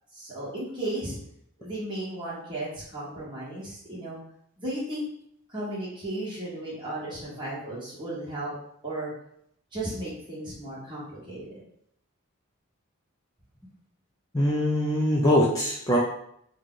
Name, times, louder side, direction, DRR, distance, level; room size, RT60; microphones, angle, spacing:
voice 1, 0.1-1.2 1.6-4.2 4.6-5.0 5.5-8.5 8.8-9.1 9.7-11.5, right 1 dB, 20° right, -7 dB, 1.3 m, -35 dB
voice 2, 14.3-16.0, equal, 15° left, -4 dB, 0.4 m, -22 dB
3.1 x 2.2 x 3.9 m, 0.71 s
head